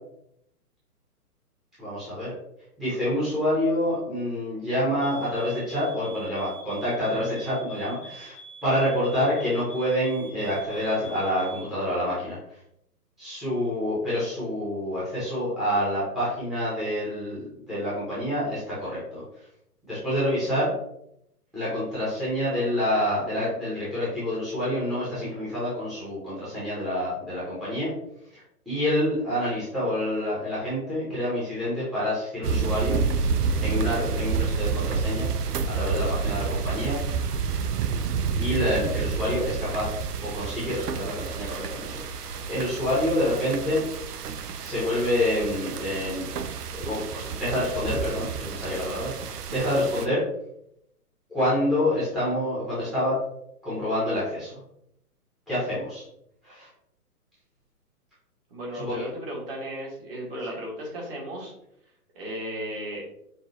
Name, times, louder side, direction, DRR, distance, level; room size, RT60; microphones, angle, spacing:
voice 1, 1.8-2.3 2.8-8.4 8.6-12.4 13.2-19.2 19.9-20.7 21.5-27.9 28.3-33.0 33.6-35.3 35.6-37.0 38.4-39.9 40.2-43.8 44.6-46.3 46.7-50.2 51.3-53.2 53.6-54.5 55.5-56.0 56.4-56.7 58.7-59.0, left 1 dB, ahead, -11 dB, 0.9 m, -27 dB
sound 1, 5.0-11.8, right 3 dB, 90° left, 0.9 m, -45 dB
sound 2, 32.4-50.1, right 5 dB, 85° right, 0.6 m, -29 dB
voice 2, 58.5-61.5 62.1-63.0, equal, 40° right, -2 dB, 1.6 m, -35 dB
5.9 x 2.5 x 2.7 m, 0.77 s
hypercardioid pair, 140°, 46 cm